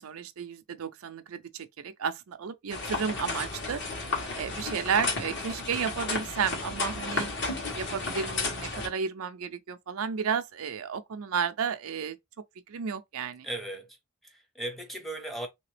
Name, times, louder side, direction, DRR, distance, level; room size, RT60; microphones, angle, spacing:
voice 1, 0.0-7.3 7.8-12.2 12.7-13.5, right 6 dB, 70° right, 0.4 m, -32 dB
sound 1, 2.7-8.9, left 3 dB, 50° left, 1.4 m, -33 dB
voice 2, 13.4-15.5, right 1 dB, ahead, 0.7 m, -37 dB
3.2 x 2.9 x 3.2 m
head